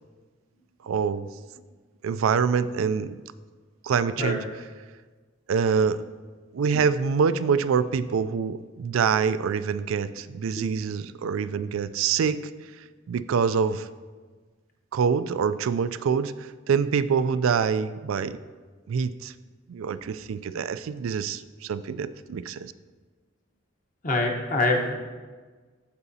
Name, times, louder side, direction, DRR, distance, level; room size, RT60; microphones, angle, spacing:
voice 1, 0.8-1.3 2.0-3.1 3.8-4.4 5.5-6.0 6.5-12.4 13.1-13.9 14.9-18.4 18.9-19.3 19.7-22.7, right 6 dB, 85° right, 14 dB, 0.3 m, -25 dB
voice 2, 24.0-25.0, left 2 dB, 40° left, 1 dB, 1.0 m, -25 dB
14.5 x 4.9 x 2.8 m, 1.4 s
head